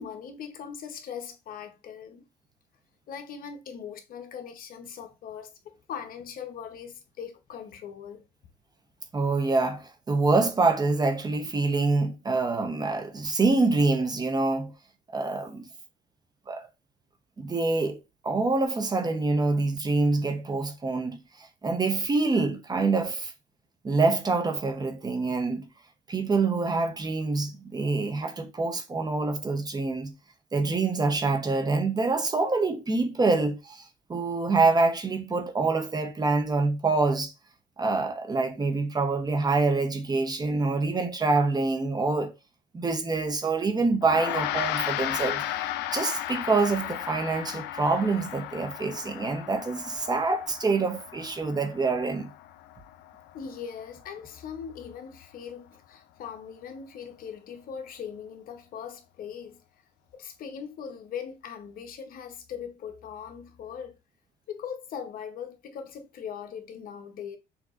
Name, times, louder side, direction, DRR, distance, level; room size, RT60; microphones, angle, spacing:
voice 1, 0.0-2.2 3.1-8.2 53.3-59.6 60.1-64.0 64.5-67.4, left 7 dB, 60° left, 0.9 m, -40 dB
voice 2, 9.1-14.7 15.1-15.7 16.5-16.7 17.4-23.3 23.8-25.7 26.1-30.1 30.5-37.3 37.8-42.3 42.7-45.4 45.9-52.3, right 3 dB, 25° right, 0.8 m, -26 dB
Gong, 44.0-53.5, left 13 dB, 85° left, 0.4 m, -34 dB
6.2 x 2.8 x 2.5 m
cardioid pair, 110°, 17 cm